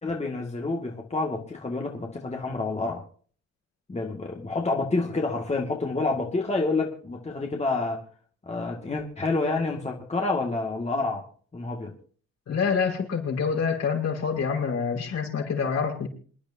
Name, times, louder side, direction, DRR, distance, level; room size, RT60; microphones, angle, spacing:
voice 1, 0.0-3.0 3.9-8.0 8.5-11.2 11.5-11.9, left 3 dB, 20° left, 0 dB, 2.1 m, -28 dB
voice 2, 12.5-16.1, left 6 dB, 60° left, -1 dB, 5.5 m, -26 dB
27.5 x 10.5 x 2.8 m, 0.43 s
cardioid pair, 90°, 30 cm